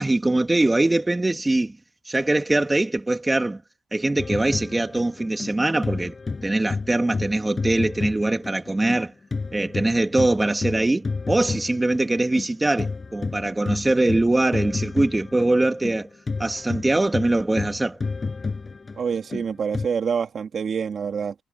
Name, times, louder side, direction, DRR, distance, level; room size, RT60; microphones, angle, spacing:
voice 1, 0.0-1.8 2.1-3.6 3.9-6.1 6.4-9.1 9.5-16.1 16.4-18.0, right 2 dB, 15° right, 2.7 m, -22 dB
sound 1, 4.2-9.0 9.3-19.9, left 4 dB, 30° left, 7.2 m, -31 dB
voice 2, 19.0-21.3, right 6 dB, 50° right, 2.9 m, -26 dB
cardioid pair, 90°, 0 cm